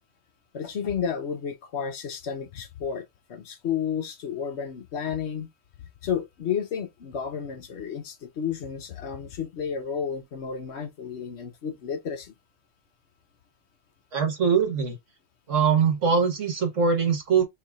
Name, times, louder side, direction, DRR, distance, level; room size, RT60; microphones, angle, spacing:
voice 1, 0.5-3.0 3.3-5.5 6.0-12.3, left 7 dB, 60° left, 1.0 m, -31 dB
voice 2, 14.1-14.9 15.5-17.4, right 6 dB, 65° right, 1.7 m, -22 dB
4.7 x 3.4 x 2.3 m
omnidirectional pair, 1.4 m